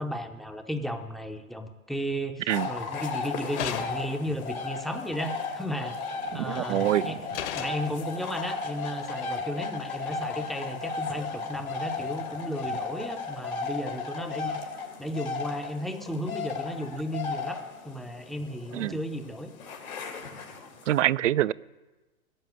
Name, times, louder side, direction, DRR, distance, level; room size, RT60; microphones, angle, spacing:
voice 1, 0.0-6.0 6.3-7.2 7.5-14.6 15.0-19.5, equal, ahead, 6 dB, 0.7 m, -34 dB
sound 1, 2.5-21.0, left 4 dB, 75° left, 2.9 m, -35 dB
sound 2, 3.6-4.2 6.3-6.6 7.3-7.9, left 10 dB, 50° left, 1.5 m, -34 dB
voice 2, 6.3-7.2 18.7-19.0 20.9-21.5, right 13 dB, 60° right, 20 dB, 0.5 m, -25 dB
16.0 x 7.4 x 9.2 m, 1.2 s
figure-of-eight pair, 105°, 44 cm